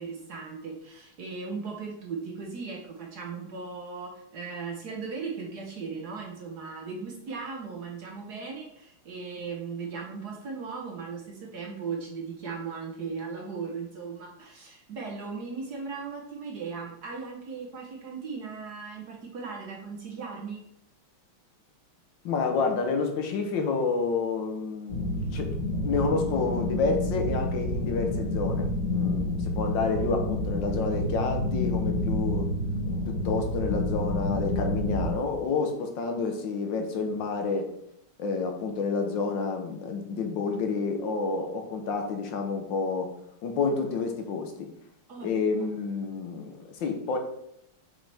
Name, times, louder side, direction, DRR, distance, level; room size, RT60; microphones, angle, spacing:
voice 1, 0.0-20.6 45.1-45.3, right 5 dB, 55° right, 1 dB, 1.3 m, -37 dB
voice 2, 22.2-25.5 25.8-32.5 33.1-37.7 38.2-43.1 43.4-44.7 45.2-47.2, left 4 dB, 65° left, 4 dB, 1.5 m, -29 dB
sound 1, 24.9-35.1, left 1 dB, 35° left, 1.5 m, -29 dB
7.2 x 5.6 x 3.4 m, 0.75 s
omnidirectional pair, 2.4 m